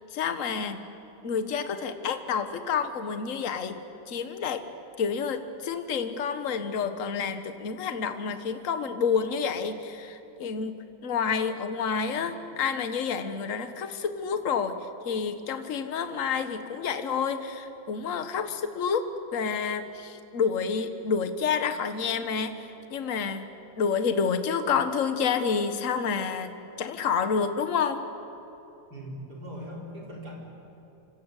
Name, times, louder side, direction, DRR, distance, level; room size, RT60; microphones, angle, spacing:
voice 1, 0.1-0.8 1.2-3.8 4.1-4.6 5.0-14.8 15.0-23.5 23.8-26.5 26.8-28.0, left 6 dB, 40° left, 9 dB, 1.5 m, -29 dB
voice 2, 28.9-30.4, equal, 45° right, -2 dB, 5.1 m, -40 dB
27.0 x 24.5 x 8.3 m, 3.0 s
omnidirectional pair, 2.4 m